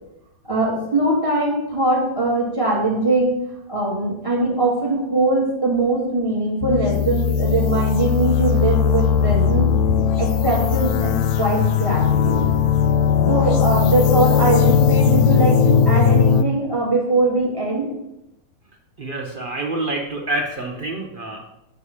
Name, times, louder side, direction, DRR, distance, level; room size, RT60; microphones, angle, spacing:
voice 1, 0.5-3.3 3.7-9.7 10.2-12.5 13.3-17.9, right 2 dB, 15° right, -3 dB, 2.4 m, -21 dB
sound 1, 6.6-16.4, left 7 dB, 70° left, 0.9 m, -18 dB
voice 2, 19.0-21.4, right 2 dB, 65° right, 0 dB, 0.5 m, -27 dB
6.4 x 4.9 x 5.6 m, 0.86 s
omnidirectional pair, 2.1 m